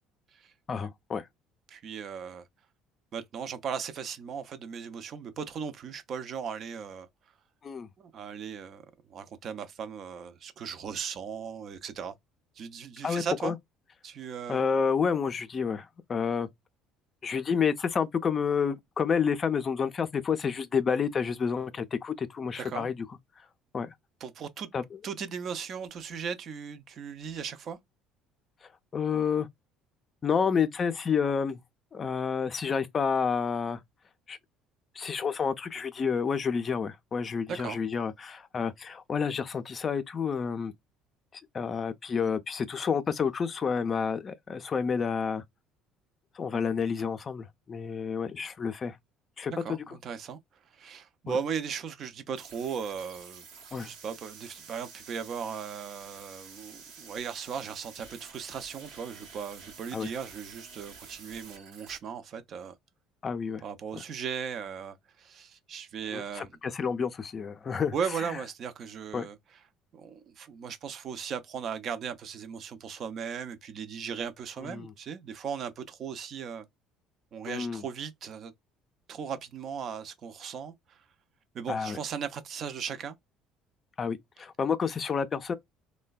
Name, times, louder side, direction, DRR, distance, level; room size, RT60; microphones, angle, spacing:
voice 1, 0.7-1.3 7.6-7.9 13.0-13.6 14.5-16.5 17.2-22.9 23.7-23.9 24.7-24.8 28.9-29.5 30.2-31.6 31.9-33.8 34.3-34.4 35.0-40.7 41.3-45.4 46.4-49.0 49.4-50.0 51.3-51.4 53.7-53.9 59.9-60.1 63.2-63.6 64.0-64.1 66.1-68.0 69.1-69.3 74.6-74.9 77.5-77.8 81.7-82.0 84.0-85.5, left 6 dB, 35° left, 0.4 m, -29 dB
voice 2, 1.7-2.4 3.1-7.1 8.0-8.8 9.1-12.1 12.6-13.5 14.0-14.7 22.6-22.9 24.2-24.7 25.0-27.8 37.5-37.8 49.5-50.4 50.7-53.4 53.8-62.7 63.6-66.5 67.9-69.4 69.9-76.7 77.3-78.5 79.1-81.0 81.5-83.2, right 7 dB, 55° right, 0.5 m, -37 dB
sound 1, 52.4-62.0, right 5 dB, 85° right, 0.9 m, -49 dB
3.1 x 2.1 x 2.2 m
supercardioid pair, 85°, 0 cm